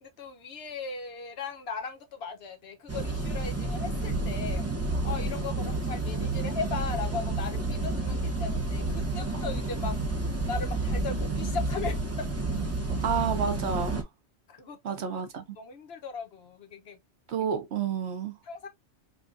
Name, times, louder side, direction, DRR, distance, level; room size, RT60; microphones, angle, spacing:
voice 1, 0.0-4.6 5.0-9.9 10.5-12.3 14.5-15.2 15.6-17.0 18.5-18.7, left 4 dB, 60° left, 1.0 m, -37 dB
sound 1, 2.9-14.0, right 2 dB, 15° right, 0.6 m, -30 dB
voice 2, 13.0-14.1 14.8-15.4 17.3-18.4, right 6 dB, 70° right, 1.0 m, -30 dB
4.8 x 2.3 x 2.4 m
omnidirectional pair, 1.2 m